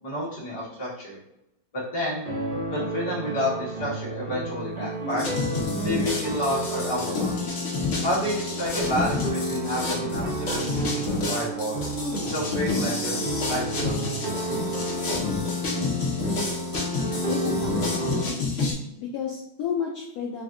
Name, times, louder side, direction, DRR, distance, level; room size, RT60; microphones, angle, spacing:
voice 1, 0.0-1.2 1.9-2.3 2.7-5.3 5.8-7.4 8.0-11.8 12.2-13.2 13.4-14.3, equal, 25° left, -7 dB, 1.1 m, -30 dB
sound 1, 2.3-18.2, right 1 dB, 45° right, 0.7 m, -31 dB
sound 2, 4.0-4.2 4.9-5.4 5.7-6.3 9.7-9.8 10.1-10.4 10.7-10.9 11.3-11.4 11.6-12.4, equal, 75° right, 0.9 m, -38 dB
sound 3, 5.2-18.7, left 3 dB, 50° left, 0.9 m, -30 dB
voice 2, 17.3-18.6 19.0-20.4, left 7 dB, 90° left, -2 dB, 0.8 m, -32 dB
3.3 x 2.6 x 3.6 m, 0.87 s
omnidirectional pair, 2.1 m